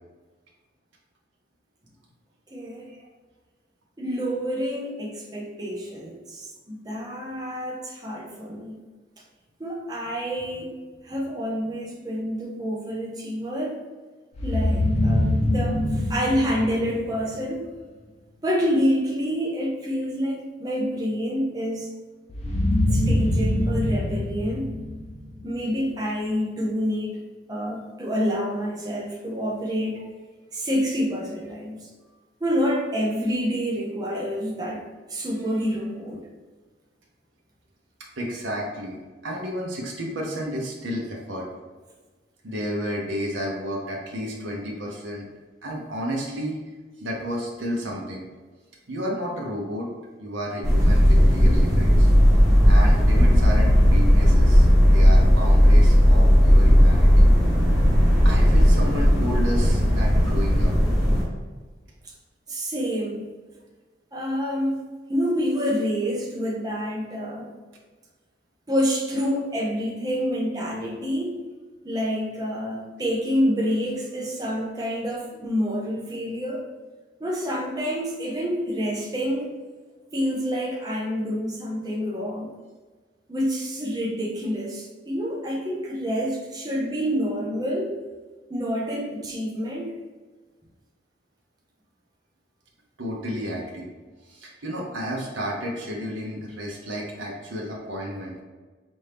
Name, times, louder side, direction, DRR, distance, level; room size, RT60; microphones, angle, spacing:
voice 1, 2.5-2.9 4.0-8.8 9.6-10.8 11.0-13.8 14.4-17.7 18.4-21.9 22.9-24.7 25.4-27.2 27.5-30.0 30.5-31.9 32.4-34.8 35.1-36.3 62.0-62.1 62.5-63.3 64.1-64.8 65.1-67.5 68.7-71.4 71.8-76.7 77.2-79.6 80.1-82.5 83.3-88.0 88.5-89.9, equal, 20° right, -2 dB, 0.6 m, -27 dB
sound 1, 14.3-17.3 22.3-25.5, left 1 dB, 35° left, 0.8 m, -24 dB
voice 2, 38.2-41.5 42.4-45.3 45.6-46.6 47.0-48.3 48.9-49.9 50.2-52.1 52.6-57.3 58.2-60.7 93.0-93.9 94.2-98.4, equal, 85° right, -2 dB, 0.8 m, -32 dB
sound 2, 50.6-61.2, equal, 5° right, 1.5 m, -16 dB
4.3 x 2.6 x 3.4 m, 1.4 s
head